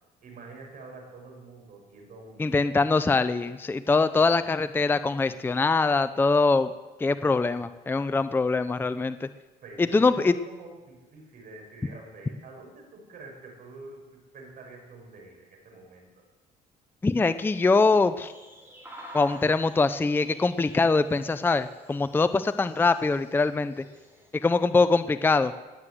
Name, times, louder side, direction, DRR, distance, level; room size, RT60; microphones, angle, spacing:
voice 1, 0.2-3.0 9.6-14.1 14.3-16.1, right 3 dB, 55° right, 1 dB, 6.0 m, -46 dB
voice 2, 2.4-6.7 7.0-9.3 9.8-10.3 17.0-18.3 19.1-23.8 24.4-25.5, left 3 dB, 10° left, 12 dB, 0.5 m, -23 dB
sound 1, 18.2-24.3, equal, 10° right, 4.5 m, -49 dB
19.5 x 7.8 x 7.8 m, 1.2 s
cardioid pair, 110°, 17 cm